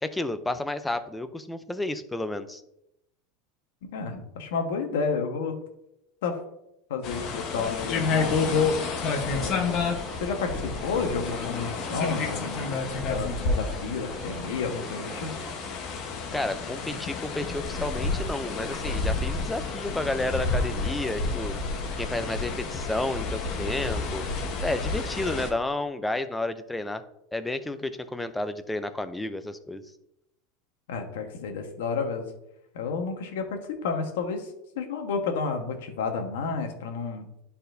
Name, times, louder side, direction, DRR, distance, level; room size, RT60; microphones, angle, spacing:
voice 1, 0.0-2.6 16.3-21.6 22.0-24.3 24.6-27.0 27.3-29.8, left 2 dB, 5° left, 10 dB, 0.5 m, -31 dB
voice 2, 3.9-5.6 6.2-6.4 6.9-8.8 9.3-9.8 10.2-12.7 13.1-15.3 30.9-32.3 32.7-34.5 34.7-37.3, left 5 dB, 85° left, 5 dB, 1.2 m, -31 dB
sound 1, 7.0-25.5, left 4 dB, 45° left, 1.0 m, -30 dB
sound 2, 7.8-15.6, right 2 dB, 20° right, 1.2 m, -43 dB
11.5 x 4.2 x 2.6 m, 0.81 s
supercardioid pair, 145°, 0 cm